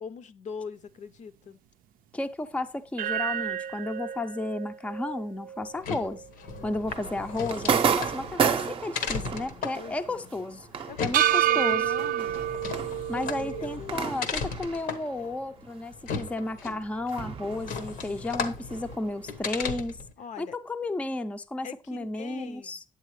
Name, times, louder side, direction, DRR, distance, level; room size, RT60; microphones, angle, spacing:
voice 1, 0.0-1.6 6.5-6.8 9.0-10.3 10.9-12.4 13.1-14.1 20.2-20.5 21.6-22.8, left 6 dB, 60° left, 0.6 m, -42 dB
voice 2, 2.1-6.2 6.6-10.7 11.0-11.8 13.1-20.0 20.4-22.8, left 2 dB, 10° left, 0.4 m, -33 dB
sound 1, 3.0-7.3 7.6-7.7 11.1-13.8, right 11 dB, 80° right, 0.4 m, -29 dB
sound 2, 5.6-20.1, left 5 dB, 85° left, 1.1 m, -37 dB
sound 3, 6.9-15.8 16.1-19.7, right 7 dB, 40° right, 0.6 m, -33 dB
9.1 x 8.1 x 3.1 m
cardioid pair, 145°, 14 cm